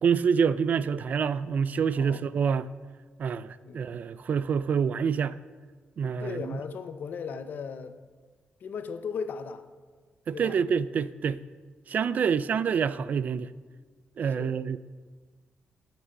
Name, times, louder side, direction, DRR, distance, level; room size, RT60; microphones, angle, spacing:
voice 1, 0.0-2.7 3.2-5.4 6.0-6.6 10.3-11.4 11.9-13.5 14.2-14.8, right 6 dB, 50° right, 0.3 m, -27 dB
voice 2, 6.2-8.0 8.6-9.7 10.3-10.6 12.2-12.3 14.3-14.6, left 6 dB, 60° left, 0.7 m, -37 dB
12.5 x 6.0 x 6.5 m
wide cardioid pair, 145°, 4 cm